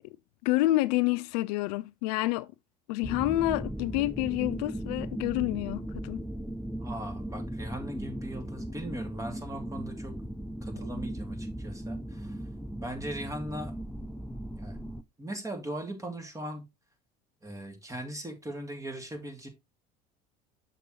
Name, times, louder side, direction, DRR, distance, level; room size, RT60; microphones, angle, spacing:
voice 1, 0.4-2.5 2.9-6.2, left 17 dB, 75° left, 0.4 m, -28 dB
sound 1, 3.0-15.0, right 1 dB, 5° left, 0.4 m, -37 dB
voice 2, 6.8-10.2 10.6-12.4 12.8-13.7 14.6-14.8 15.2-16.6 17.4-19.5, right 1 dB, 15° right, 2.4 m, -39 dB
6.7 x 6.4 x 3.1 m
hypercardioid pair, 75°, 21 cm